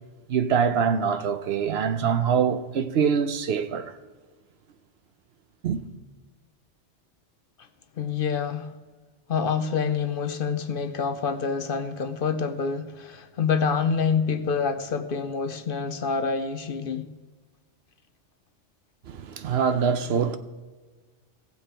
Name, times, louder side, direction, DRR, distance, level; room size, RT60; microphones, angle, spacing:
voice 1, 0.3-4.0 5.6-5.8 19.0-20.4, right 7 dB, 65° right, 0.8 m, -24 dB
voice 2, 8.0-8.7 9.3-17.1, left 5 dB, 55° left, 0.7 m, -27 dB
17.0 x 7.4 x 4.4 m
omnidirectional pair, 1.2 m